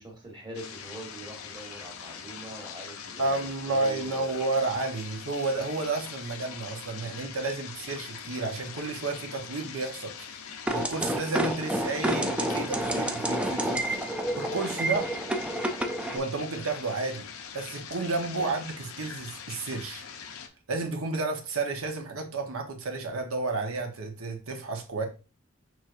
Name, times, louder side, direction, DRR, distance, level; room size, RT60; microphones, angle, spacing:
voice 1, 0.0-4.3 18.3-18.5, right 1 dB, 20° right, 1.4 m, -43 dB
sound 1, 0.5-20.5, left 7 dB, 80° left, 0.6 m, -42 dB
voice 2, 3.2-10.4 10.7-15.2 16.1-17.3 17.5-20.0 20.7-25.1, right 3 dB, 75° right, 1.0 m, -31 dB
sound 2, 10.7-16.2, right 1 dB, 5° right, 0.4 m, -29 dB
6.2 x 3.1 x 2.5 m
head